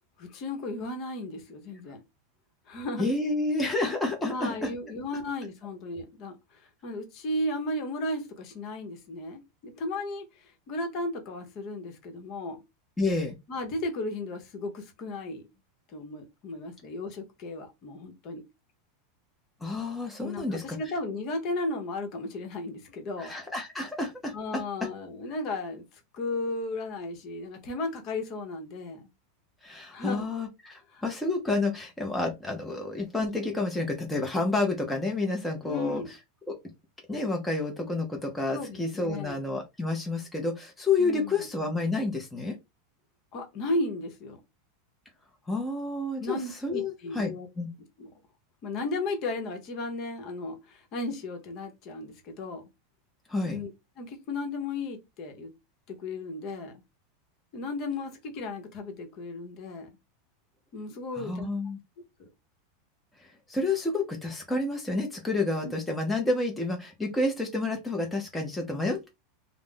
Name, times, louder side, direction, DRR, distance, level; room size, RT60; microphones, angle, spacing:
voice 1, 0.2-2.0 2.7-3.1 4.3-12.6 13.5-15.5 15.9-18.4 20.2-23.3 24.3-29.0 29.9-30.3 30.9-31.0 35.6-36.1 38.5-39.4 41.0-41.5 43.3-44.4 46.2-47.5 48.0-48.1 48.6-52.6 53.4-53.7 54.0-55.5 55.9-56.8 57.5-59.9 60.7-61.5 62.2-62.3 65.6-65.7, left 2 dB, 45° left, 0.9 m, -35 dB
voice 2, 3.0-4.7 5.1-5.2 13.0-13.4 19.6-20.8 23.2-24.6 29.6-36.0 36.5-36.6 37.1-42.5 45.5-47.7 53.3-53.6 61.2-61.8 63.5-69.1, left 2 dB, 10° left, 0.7 m, -29 dB
2.4 x 2.0 x 3.7 m
supercardioid pair, 120°, 0 cm